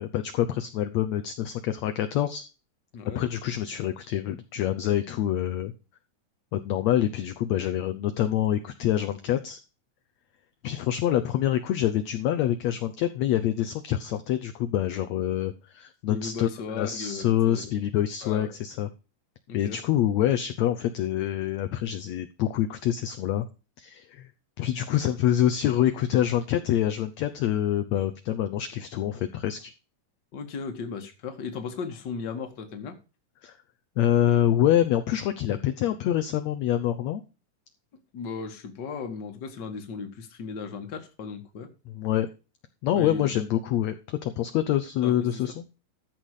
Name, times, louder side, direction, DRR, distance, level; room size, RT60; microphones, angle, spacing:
voice 1, 0.0-2.4 3.2-5.7 6.5-9.6 10.6-18.9 19.5-23.5 23.8-24.3 24.6-29.7 31.0-31.1 33.4-33.6 34.0-37.2 41.9-42.3 42.8-45.6, left 11 dB, 70° left, 8 dB, 1.8 m, -26 dB
voice 2, 2.9-3.3 16.1-17.8 18.2-18.5 19.5-19.8 30.3-33.0 38.1-41.7 42.9-43.3 45.0-45.4, left 5 dB, 40° left, 7 dB, 1.9 m, -36 dB
14.0 x 6.1 x 4.9 m, 0.32 s
omnidirectional pair, 3.8 m